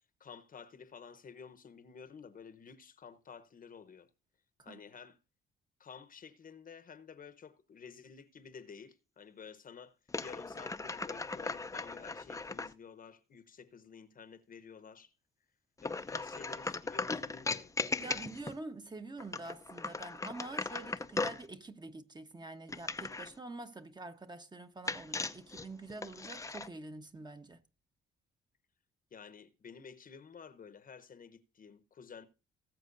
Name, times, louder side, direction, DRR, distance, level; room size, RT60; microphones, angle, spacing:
voice 1, 0.2-4.1 4.6-5.2 5.8-9.9 10.2-15.1 15.8-17.7 29.1-32.3, left 6 dB, 45° left, 1.0 m, -52 dB
sound 1, 10.1-12.7 15.8-18.6 19.2-21.5 22.7-23.4 24.9-26.7, left 3 dB, 15° left, 0.6 m, -38 dB
voice 2, 18.0-27.6, right 2 dB, 20° right, 1.1 m, -46 dB
19.5 x 7.5 x 2.6 m
cardioid pair, 90°, 20 cm